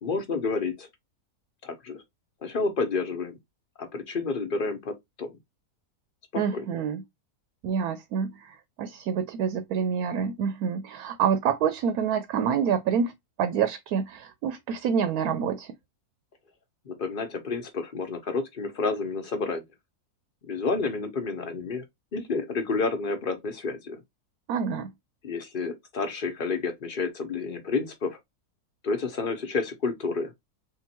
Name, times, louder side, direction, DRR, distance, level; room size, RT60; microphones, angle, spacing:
voice 1, 0.0-0.9 1.6-2.0 2.4-3.4 3.8-4.9 5.2-5.3 6.5-6.6 16.8-19.6 20.4-21.8 22.1-24.0 25.2-28.2 28.8-30.3, left 4 dB, 40° left, 1.0 m, -30 dB
voice 2, 6.4-7.0 7.6-13.1 13.4-15.7 24.5-24.9, right 7 dB, 75° right, 1.1 m, -27 dB
3.8 x 2.5 x 4.3 m
omnidirectional pair, 1.6 m